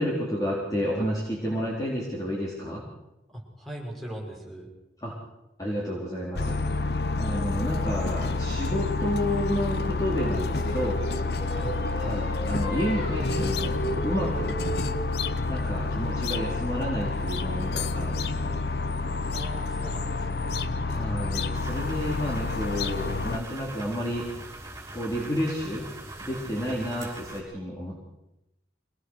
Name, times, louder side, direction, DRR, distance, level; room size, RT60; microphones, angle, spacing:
voice 1, 0.0-2.8 5.0-5.1 5.6-6.6 7.2-11.0 12.0-14.6 15.5-18.6 20.8-24.3 24.9-25.9 26.2-28.0, equal, 20° left, -5 dB, 4.1 m, -30 dB
voice 2, 3.3-4.7 11.5-11.8 15.3-15.7 19.2-21.3 26.6-26.9, equal, ahead, -2 dB, 5.9 m, -40 dB
sound 1, 6.4-23.4, left 3 dB, 60° left, 0.8 m, -29 dB
Singing, 10.1-15.3, right 1 dB, 85° left, 3.5 m, -35 dB
sound 2, 21.5-27.4, right 2 dB, 15° right, 6.3 m, -41 dB
24.5 x 19.0 x 6.5 m, 0.92 s
head